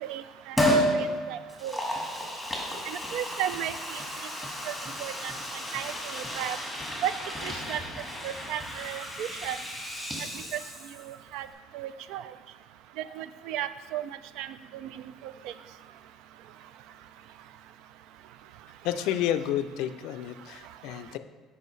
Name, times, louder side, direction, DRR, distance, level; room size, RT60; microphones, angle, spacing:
Liquid, 0.6-0.9 1.5-11.1 11.5-11.6, equal, ahead, 1.6 m, -32 dB
voice 1, 0.9-1.8 2.9-4.0 4.7-4.8 5.0-5.3 5.7-6.6 7.0-7.1 7.4-7.8 8.2-9.6 11.1-11.5 11.7-12.2 13.2-14.0 14.4-14.5 14.8-14.9, right 11 dB, 75° right, 13 dB, 0.3 m, -34 dB
voice 2, 18.8-21.2, left 11 dB, 75° left, 10 dB, 0.4 m, -30 dB
7.7 x 5.2 x 3.2 m, 1.4 s
cardioid pair, 110°, 0 cm